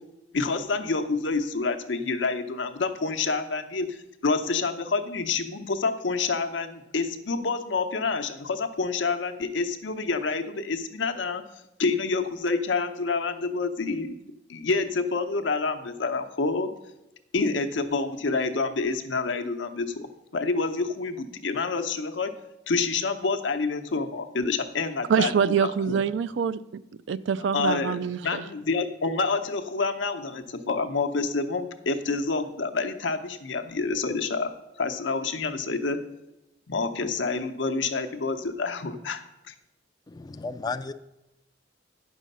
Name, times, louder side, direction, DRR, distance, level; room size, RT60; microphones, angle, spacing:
voice 1, 0.3-11.4 11.8-14.2 14.5-16.7 17.3-20.1 20.3-22.3 22.7-25.3 25.6-26.0 27.5-34.5 34.8-36.0 36.7-39.5, left 4 dB, 80° left, 0.8 m, -28 dB
voice 2, 25.1-26.6 27.1-28.4, right 7 dB, 70° right, 0.4 m, -25 dB
voice 3, 40.1-40.9, left 4 dB, 20° left, 0.3 m, -33 dB
9.1 x 6.3 x 5.4 m
head